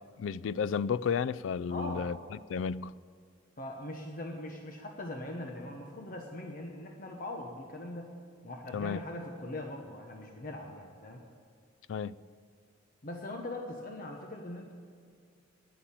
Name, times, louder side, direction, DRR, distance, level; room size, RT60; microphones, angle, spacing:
voice 1, 0.2-2.2 2.5-2.9 8.7-9.0 11.9-12.1, left 6 dB, 70° left, 0.3 m, -32 dB
voice 2, 1.7-2.1 3.6-8.1 8.4-11.2 13.0-14.7, left 1 dB, 45° left, 1.0 m, -41 dB
10.0 x 9.9 x 8.7 m
head